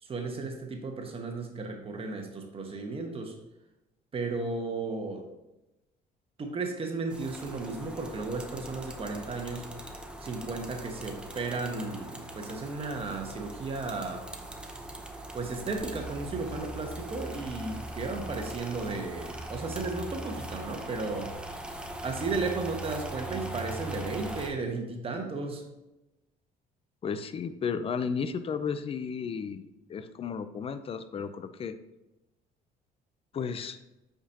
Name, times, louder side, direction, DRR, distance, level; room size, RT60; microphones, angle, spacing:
voice 1, 0.0-3.3 4.1-5.2 6.4-9.7 10.2-14.2 15.3-21.3 22.0-25.6, right 3 dB, 35° right, 3 dB, 1.2 m, -34 dB
sound 1, 7.1-24.5, right 1 dB, 5° right, 0.8 m, -40 dB
voice 2, 27.0-31.8 33.3-33.8, left 6 dB, 35° left, 12 dB, 0.5 m, -33 dB
8.0 x 5.1 x 2.8 m, 0.98 s
cardioid pair, 110°, 17 cm